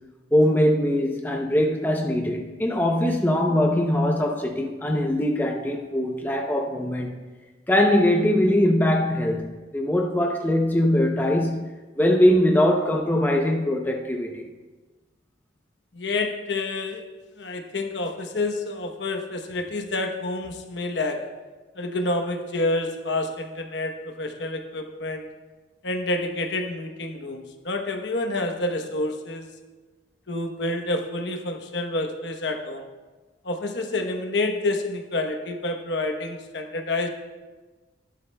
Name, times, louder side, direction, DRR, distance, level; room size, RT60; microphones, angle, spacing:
voice 1, 0.3-7.2 7.7-14.4, left 1 dB, 10° left, 0.6 m, -22 dB
voice 2, 15.9-17.1 17.4-21.3 21.8-25.3 25.8-29.5 30.3-32.9 33.4-37.1, left 2 dB, 70° left, 1.0 m, -28 dB
16.0 x 10.5 x 2.3 m
head